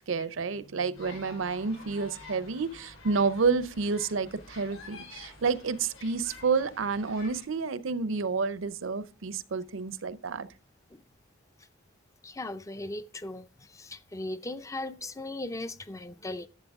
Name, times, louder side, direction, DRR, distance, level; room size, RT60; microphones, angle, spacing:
voice 1, 0.1-10.5, right 4 dB, 70° right, 0.6 m, -29 dB
sound 1, 0.9-7.4, left 3 dB, 70° left, 5.2 m, -49 dB
voice 2, 12.2-16.5, left 2 dB, 15° left, 0.5 m, -38 dB
11.5 x 7.8 x 3.5 m
head